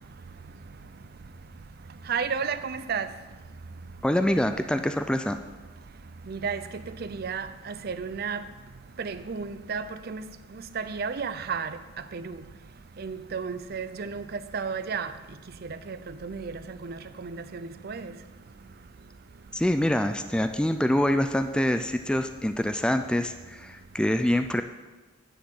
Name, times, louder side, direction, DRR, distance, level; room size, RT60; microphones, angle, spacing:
voice 1, 2.1-3.1 6.3-8.4 9.0-11.8 12.1-12.4 13.0-15.1 15.6-18.1, right 5 dB, 50° right, 0.5 m, -33 dB
voice 2, 4.0-5.4 19.5-24.6, left 1 dB, 5° left, 0.3 m, -25 dB
10.0 x 4.3 x 7.7 m
head